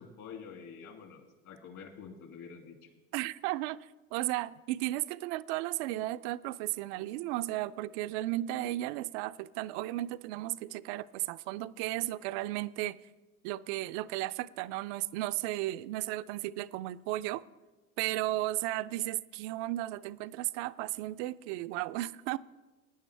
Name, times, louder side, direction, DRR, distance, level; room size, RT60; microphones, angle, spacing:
voice 1, 0.0-2.8, left 6 dB, 45° left, 3 dB, 2.5 m, -47 dB
voice 2, 3.1-13.0 13.4-17.4 18.0-22.4, right 16 dB, 55° right, 15 dB, 0.5 m, -34 dB
17.5 x 9.8 x 3.3 m, 1.2 s
hypercardioid pair, 95°, 42 cm